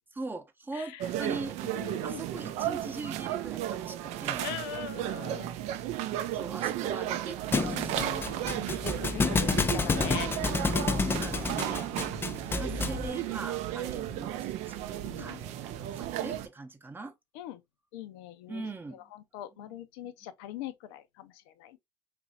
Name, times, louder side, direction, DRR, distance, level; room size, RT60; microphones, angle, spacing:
voice 1, 0.1-4.5 6.3-8.3 11.2-11.9 12.6-17.1 18.5-19.0 19.6-19.8, right 3 dB, 15° right, 0.7 m, -41 dB
sound 1, 1.0-16.5, right 12 dB, 60° right, 0.4 m, -34 dB
voice 2, 1.7-2.2 4.4-5.5 7.9-10.3 12.1-12.5 15.0-15.4 17.3-17.6 17.9-18.6 19.1-21.8, left 11 dB, 75° left, 0.5 m, -42 dB
Thump thud, 7.5-13.1, left 4 dB, 15° left, 0.4 m, -29 dB
3.0 x 2.5 x 2.6 m
hypercardioid pair, 80°, 13 cm